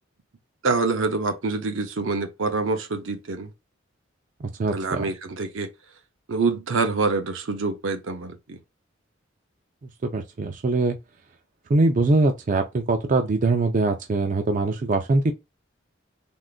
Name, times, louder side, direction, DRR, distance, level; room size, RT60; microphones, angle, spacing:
voice 1, 0.6-3.5 4.7-5.7 6.3-8.6, right 3 dB, 80° right, 0.6 m, -26 dB
voice 2, 4.4-5.0 10.0-11.0 11.7-15.3, right 3 dB, 40° right, 0.4 m, -22 dB
3.6 x 2.4 x 2.4 m
head